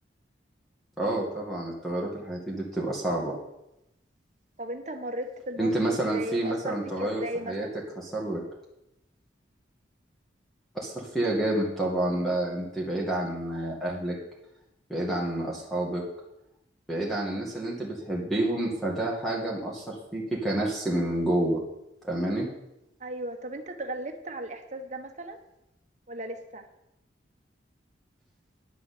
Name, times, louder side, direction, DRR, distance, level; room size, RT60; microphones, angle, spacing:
voice 1, 1.0-3.4 5.6-7.7 8.0-8.4 10.7-14.1 14.9-16.0 16.9-21.6 22.0-22.5, right 1 dB, ahead, -3 dB, 2.2 m, -29 dB
voice 2, 4.6-7.8 23.0-25.4 26.1-26.6, right 1 dB, 40° right, 6 dB, 1.4 m, -36 dB
10.5 x 7.1 x 8.5 m, 0.88 s
head